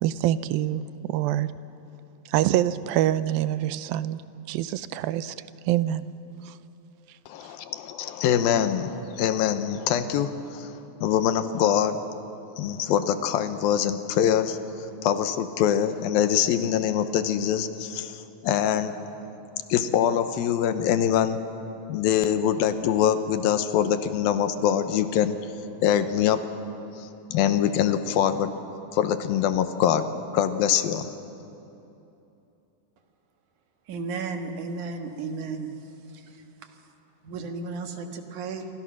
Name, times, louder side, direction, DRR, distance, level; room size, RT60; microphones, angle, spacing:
voice 1, 0.0-1.5 2.3-4.2 4.5-5.4 5.7-6.1 6.5-6.6, right 13 dB, 90° right, 15 dB, 2.5 m, -25 dB
voice 2, 7.3-10.7 11.0-12.0 12.6-14.6 15.0-18.9 19.7-21.4 21.9-25.4 25.8-26.4 27.3-28.5 28.9-30.0 30.3-31.1, left 9 dB, 90° left, 10 dB, 2.8 m, -24 dB
voice 3, 33.9-35.7 37.2-38.7, right 4 dB, 65° right, 5 dB, 2.8 m, -33 dB
28.5 x 23.5 x 6.2 m, 2.9 s
omnidirectional pair, 4.1 m